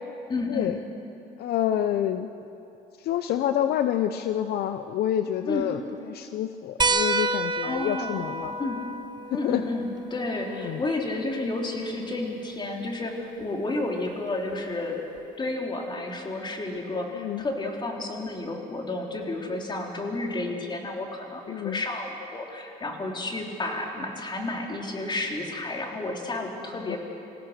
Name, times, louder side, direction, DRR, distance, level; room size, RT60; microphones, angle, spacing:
voice 1, 0.3-0.7 5.4-5.6 7.6-8.2 8.6-8.8 9.3-15.0 15.4-27.0, left 2 dB, 25° left, 1 dB, 3.3 m, -31 dB
voice 2, 1.4-2.3 3.0-5.8 6.1-8.5 9.3-9.6 10.5-10.8 17.1-17.4 21.5-21.8 26.7-27.0, left 11 dB, 70° left, 9 dB, 0.7 m, -28 dB
sound 1, 6.8-11.9 13.4-13.5 15.2-15.3, right 3 dB, 25° right, 0.8 m, -30 dB
26.5 x 16.0 x 6.7 m, 2.8 s
cardioid pair, 110°, 17 cm